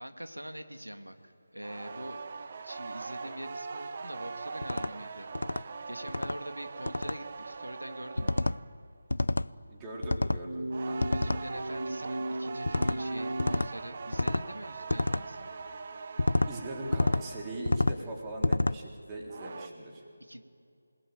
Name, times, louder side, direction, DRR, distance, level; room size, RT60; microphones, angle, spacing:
voice 1, 0.0-2.2 2.6-5.3 5.5-8.6 11.1-15.5 20.2-20.4, equal, 85° right, 6 dB, 2.3 m, -44 dB
sound 1, 1.6-8.8 10.7-17.8 19.1-19.7, right 4 dB, 30° right, 1.3 m, -42 dB
sound 2, 4.6-4.9 5.3-5.6 6.1-6.4 6.9-7.2 8.2-8.6 9.1-9.5 10.0-10.4 11.0-11.4 12.7-13.0 13.4-13.7 14.1-14.5 14.9-15.2 16.2-16.5 16.9-17.2 17.7-18.0 18.4-18.8, left 2 dB, 65° left, 0.7 m, -28 dB
voice 2, 9.7-11.2 16.5-20.0, right 1 dB, 10° right, -2 dB, 3.8 m, -40 dB
sound 3, 10.4-13.6, right 1 dB, 65° right, 1.2 m, -36 dB
28.0 x 21.0 x 9.5 m, 2.6 s
figure-of-eight pair, 160°, 0 cm